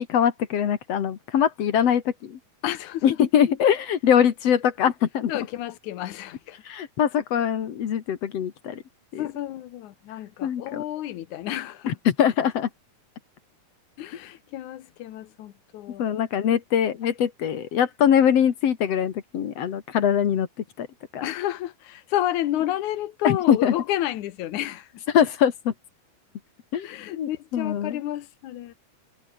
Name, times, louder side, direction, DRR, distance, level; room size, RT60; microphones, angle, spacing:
voice 1, 0.0-2.4 3.0-5.5 6.7-8.8 9.1-9.3 10.4-10.8 11.9-12.7 16.0-20.5 20.8-20.9 21.1-21.2 23.2-23.7 25.1-25.7 26.7-28.0, left 9 dB, 55° left, 2.4 m, -22 dB
voice 2, 2.6-3.0 5.3-6.6 9.2-12.0 14.0-16.0 21.2-25.0 26.8-28.7, left 13 dB, 70° left, 2.5 m, -31 dB
omnidirectional pair, 3.8 m